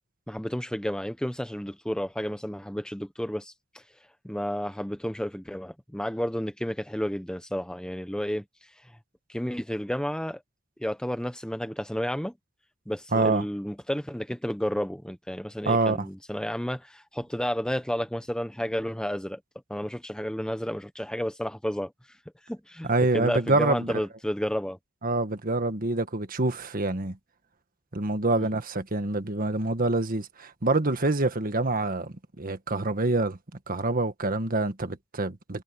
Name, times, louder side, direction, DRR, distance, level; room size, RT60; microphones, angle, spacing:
voice 1, 0.3-3.8 4.2-8.4 9.3-10.4 10.8-12.3 12.9-19.4 19.7-21.9 22.5-24.8 28.4-28.5, equal, 5° left, 0.9 m, -31 dB
voice 2, 13.1-13.4 15.7-16.1 22.8-23.9 25.0-27.2 27.9-33.4 33.7-35.6, right 2 dB, 45° right, 1.6 m, -26 dB
head